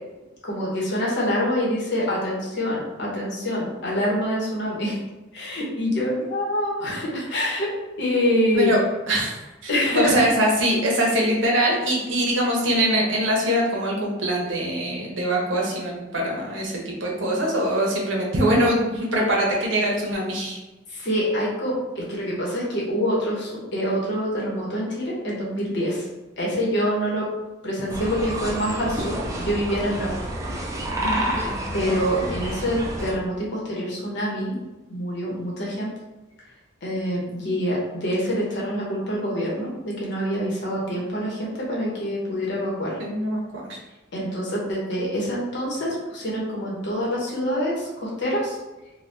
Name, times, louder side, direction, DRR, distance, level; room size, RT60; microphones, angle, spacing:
voice 1, 0.4-5.0 5.3-7.7 8.0-8.7 9.7-10.2 21.0-26.1 26.4-27.3 27.6-30.1 31.7-34.6 34.9-35.9 36.8-43.0 44.1-48.6, equal, 60° left, -4 dB, 0.9 m, -26 dB
voice 2, 9.1-20.6 31.0-31.4 43.0-43.8 44.2-44.3, equal, 65° right, -2 dB, 0.8 m, -23 dB
sound 1, 27.9-33.1, right 1 dB, 15° right, 0.4 m, -29 dB
2.7 x 2.2 x 3.3 m, 1.1 s
head